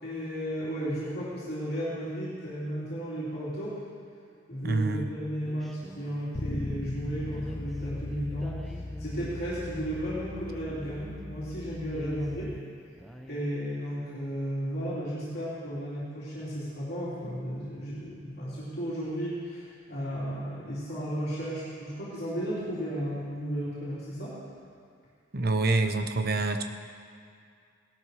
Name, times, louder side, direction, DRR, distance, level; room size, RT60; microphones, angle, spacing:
voice 1, 0.0-3.7 4.5-12.5 13.3-24.3, equal, 50° left, -10 dB, 3.6 m, -34 dB
voice 2, 4.6-5.1 25.3-26.6, right 3 dB, 50° right, 7 dB, 0.9 m, -26 dB
sound 1, 5.4-6.4 7.3-11.3 11.8-13.4, equal, ahead, 0.8 m, -46 dB
Bass guitar, 6.3-12.6, left 2 dB, 20° left, 0.4 m, -39 dB
18.0 x 12.5 x 5.0 m, 2.3 s
head